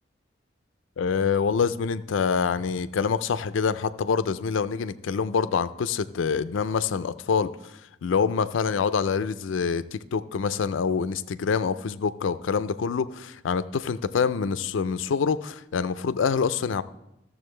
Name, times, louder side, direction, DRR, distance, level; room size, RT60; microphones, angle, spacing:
voice 1, 1.0-16.8, left 6 dB, 75° left, 15 dB, 0.4 m, -26 dB
14.0 x 7.0 x 3.2 m, 0.87 s
head